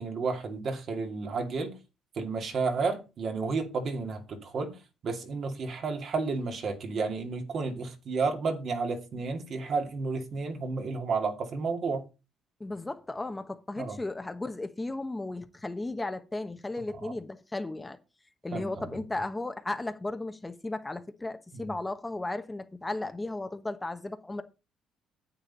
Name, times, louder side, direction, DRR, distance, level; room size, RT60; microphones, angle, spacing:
voice 1, 0.0-1.8 2.1-12.0 13.8-14.0 17.0-17.2 18.5-19.0 21.5-21.7, right 4 dB, 55° right, 2.5 m, -32 dB
voice 2, 12.6-18.0 18.4-24.4, left 2 dB, 15° left, 1.2 m, -35 dB
10.0 x 8.3 x 4.1 m
cardioid pair, 100°, 0 cm